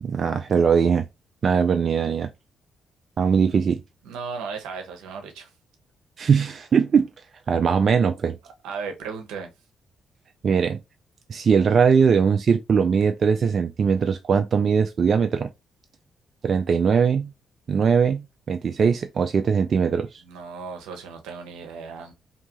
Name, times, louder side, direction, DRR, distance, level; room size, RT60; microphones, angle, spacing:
voice 1, 0.0-1.0 1.4-2.3 3.2-3.8 6.2-7.1 7.5-8.4 10.4-10.8 11.3-15.5 16.4-17.3 17.7-20.2, right 6 dB, 55° right, 0.3 m, -20 dB
voice 2, 4.0-5.5 8.6-9.5 20.2-22.1, right 5 dB, 90° right, 0.7 m, -35 dB
2.7 x 2.3 x 2.8 m
supercardioid pair, 60°, 0 cm